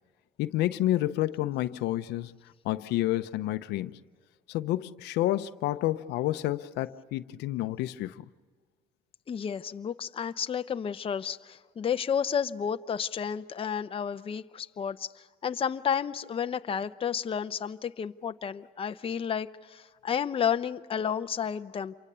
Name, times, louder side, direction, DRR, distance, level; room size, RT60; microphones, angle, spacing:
voice 1, 0.4-2.3 2.6-3.9 4.5-8.2, left 15 dB, 85° left, 0.7 m, -29 dB
voice 2, 9.3-21.9, left 7 dB, 35° left, 0.7 m, -31 dB
28.0 x 24.0 x 6.9 m
cardioid pair, 110°, 17 cm